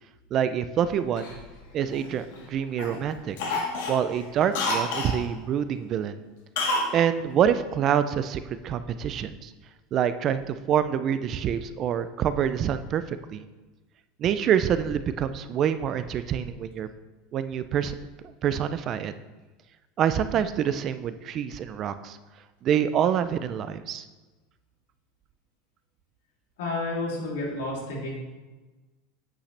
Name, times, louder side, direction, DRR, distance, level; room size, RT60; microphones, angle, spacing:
voice 1, 0.3-1.4 1.7-3.4 3.9-6.2 6.9-9.5 9.9-13.5 14.2-16.9 17.3-18.0 18.4-19.1 20.0-22.2 22.6-24.0, right 9 dB, 25° right, 11 dB, 0.3 m, -26 dB
Cough, 1.2-2.4 2.8-3.0 3.4-5.2 6.6-6.9 7.2-7.3, left 2 dB, 65° left, 1.8 m, -29 dB
voice 2, 26.6-28.1, left 2 dB, 90° left, -4 dB, 3.1 m, -30 dB
8.6 x 8.3 x 3.3 m, 1.2 s
supercardioid pair, 180°, 0 cm